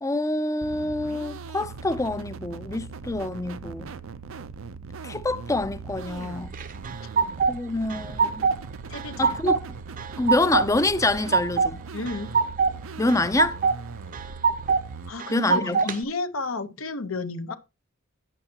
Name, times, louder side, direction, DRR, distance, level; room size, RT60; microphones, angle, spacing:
voice 1, 0.0-3.9 5.0-6.5 7.5-8.5 9.2-9.5 10.2-11.9 13.0-13.6 15.3-15.8, left 2 dB, 15° left, 0.5 m, -26 dB
sound 1, 0.6-15.1, right 4 dB, 75° right, 0.6 m, -39 dB
sound 2, 6.5-7.5 7.9-8.6 8.9-9.6 10.0-10.7 11.0-11.7 12.1-12.7 13.1-13.8 14.1-14.8 15.2-16.0, right 5 dB, 40° right, 0.7 m, -23 dB
voice 2, 8.9-9.4 11.9-12.3 15.1-17.6, left 3 dB, 75° left, 1.0 m, -31 dB
11.5 x 8.8 x 2.9 m
head